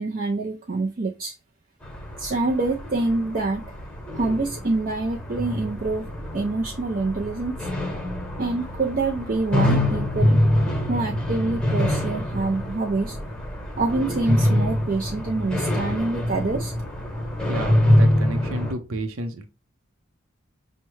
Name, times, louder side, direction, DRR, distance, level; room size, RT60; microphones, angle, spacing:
voice 1, 0.0-1.3 2.2-3.6 4.1-6.1 6.3-7.7 8.4-10.4 10.9-13.2 13.8-16.7, right 3 dB, 40° right, 0 dB, 0.5 m, -26 dB
sound 1, 1.8-18.7, left 1 dB, 5° left, 1.0 m, -25 dB
voice 2, 17.5-19.5, right 1 dB, 85° right, 6 dB, 0.6 m, -31 dB
5.7 x 2.1 x 3.1 m, 0.30 s
head